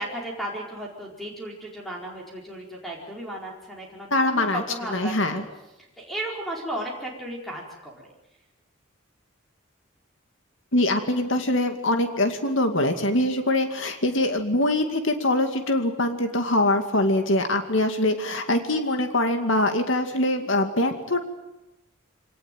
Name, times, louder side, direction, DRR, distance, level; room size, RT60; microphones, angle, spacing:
voice 1, 0.0-5.4 6.0-8.1, right 1 dB, ahead, -2 dB, 4.6 m, -35 dB
voice 2, 4.1-4.6 4.9-5.4 10.7-21.2, left 1 dB, 65° left, 6 dB, 2.3 m, -23 dB
25.5 x 19.0 x 9.2 m, 0.95 s
head